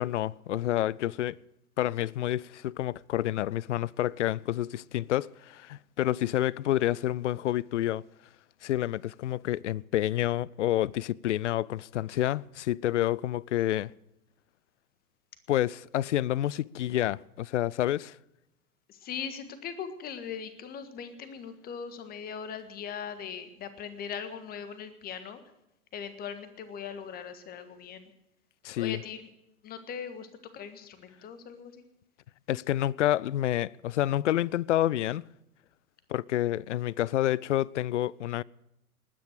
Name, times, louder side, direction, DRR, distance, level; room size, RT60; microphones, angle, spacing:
voice 1, 0.0-1.4 1.8-8.0 8.6-13.9 15.5-18.2 28.6-29.0 32.5-35.2 36.1-38.4, left 13 dB, 55° left, 0.5 m, -28 dB
voice 2, 18.9-25.4 25.9-28.1 28.8-29.3 29.6-30.3 30.5-31.8, left 7 dB, 20° left, 1.6 m, -40 dB
20.0 x 9.7 x 6.6 m
figure-of-eight pair, 115°, 45 cm